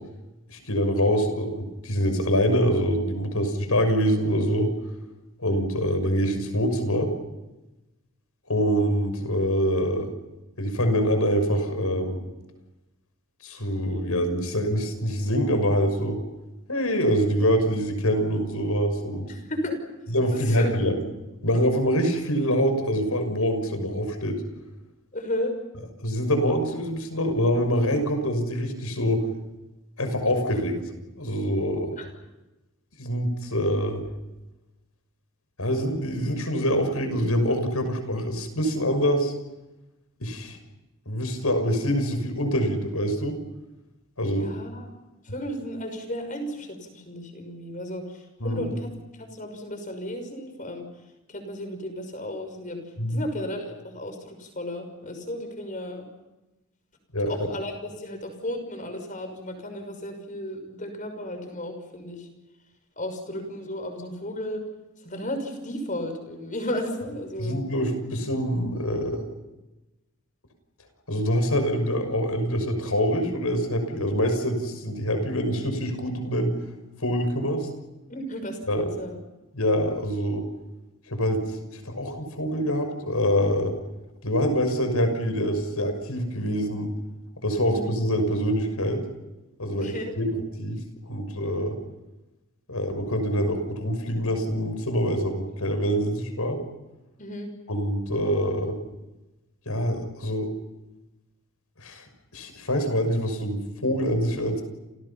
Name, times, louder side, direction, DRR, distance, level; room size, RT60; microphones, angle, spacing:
voice 1, 0.5-4.7 5.4-7.1 8.5-10.1 10.6-12.2 13.4-16.2 16.7-19.3 20.1-20.9 21.4-24.4 26.0-29.2 30.0-30.8 31.2-32.0 33.0-34.0 35.6-39.3 40.2-40.6 41.1-43.3 44.2-44.5 48.4-48.7 53.0-53.2 57.1-57.3 67.4-69.2 71.1-76.5 77.0-77.7 78.7-78.8 79.5-80.4 81.1-81.4 81.7-83.7 84.2-86.9 87.4-89.0 89.6-90.8 91.1-91.7 92.7-96.6 97.7-98.8 99.7-100.5 101.8-102.0 102.3-104.6, equal, 80° left, 7 dB, 6.3 m, -25 dB
voice 2, 19.3-19.8 20.3-21.0 25.1-25.5 32.0-32.1 44.2-44.9 45.2-50.9 51.3-52.8 53.1-56.1 57.3-62.3 63.0-64.6 65.0-67.6 78.1-79.2 87.6-87.9 89.7-90.2 97.2-97.5, left 1 dB, 35° left, 6 dB, 6.1 m, -34 dB
30.0 x 29.5 x 5.8 m, 1.0 s
head